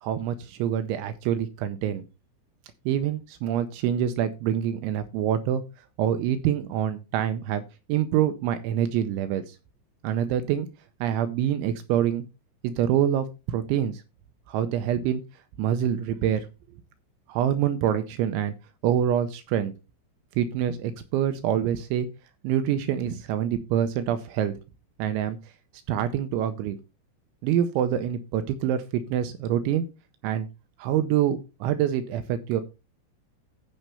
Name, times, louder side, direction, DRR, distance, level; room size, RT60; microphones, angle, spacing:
voice 1, 0.0-2.0 2.9-5.6 6.0-7.6 7.9-9.6 10.0-10.7 11.0-12.2 12.6-14.0 14.5-15.2 15.6-16.5 17.3-18.5 18.8-19.7 20.4-22.1 22.4-24.5 25.0-25.4 25.9-26.8 27.4-29.9 30.2-30.5 30.8-32.6, right 10 dB, 85° right, 10 dB, 2.9 m, -26 dB
15.0 x 5.5 x 3.3 m, 0.28 s
omnidirectional pair, 5.8 m